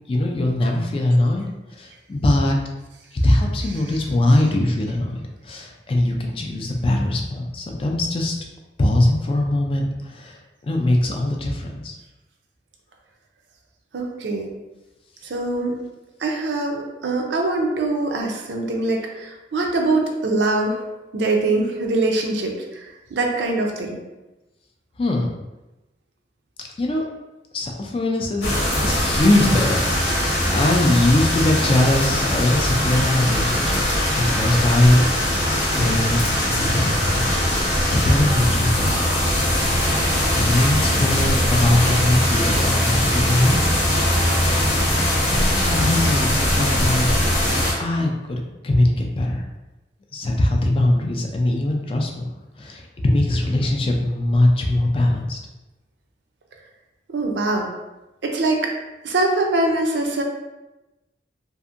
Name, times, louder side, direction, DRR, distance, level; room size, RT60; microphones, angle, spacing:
voice 1, 0.1-1.5 1.8-2.6 3.1-8.3 8.8-12.0 25.0-25.3 26.8-27.0 27.5-28.5 28.8-30.2 30.5-35.0 35.8-39.0 40.3-43.6 45.2-47.1 47.8-49.4 50.1-52.2 52.6-55.4, left 1 dB, 30° left, 1 dB, 0.3 m, -21 dB
voice 2, 13.9-14.5 15.2-15.8 16.2-20.9 21.1-24.0 57.1-57.7 58.2-58.7 59.0-60.2, right 2 dB, 85° right, 1 dB, 0.5 m, -23 dB
sound 1, 28.4-47.7, left 1 dB, 85° left, 0.9 m, -21 dB
2.7 x 2.5 x 2.4 m, 1.0 s
head